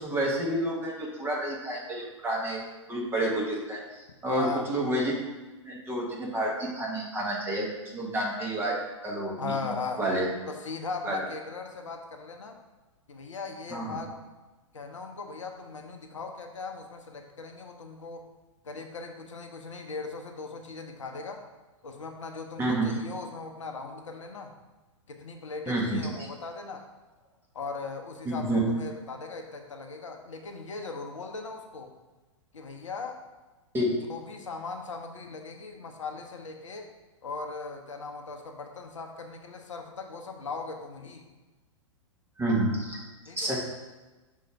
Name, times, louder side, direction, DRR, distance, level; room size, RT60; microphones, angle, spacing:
voice 1, 0.0-2.6 2.9-5.1 5.6-7.7 7.9-8.8 9.0-10.3 11.0-11.2 13.7-14.0 22.6-22.9 25.7-26.0 28.2-28.6 33.7-34.0 42.4-43.0 43.4-43.6, right 1 dB, 15° right, -3 dB, 1.5 m, -29 dB
voice 2, 4.3-4.7 9.4-10.0 10.5-12.6 13.1-14.1 14.7-18.3 18.6-21.4 21.8-24.5 25.1-26.8 27.5-31.9 32.5-33.2 34.1-36.9 37.2-41.2 43.3-43.6, left 4 dB, 70° left, 4 dB, 0.8 m, -38 dB
6.1 x 3.7 x 4.6 m, 1.2 s
figure-of-eight pair, 105°, 16 cm